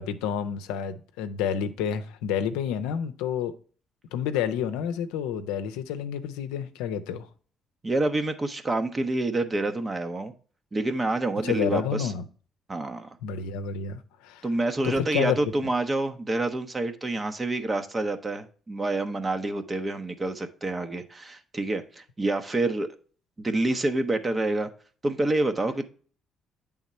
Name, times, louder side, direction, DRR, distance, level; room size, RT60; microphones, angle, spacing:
voice 1, 0.0-3.5 4.1-7.3 11.4-12.2 13.2-14.4 14.8-15.4, left 8 dB, 90° left, 0.6 m, -29 dB
voice 2, 7.8-10.3 10.7-12.1 12.7-13.1 14.4-22.9 23.4-24.7 25.0-25.9, right 2 dB, 25° right, 0.8 m, -27 dB
8.0 x 3.6 x 4.1 m
supercardioid pair, 70°, 0 cm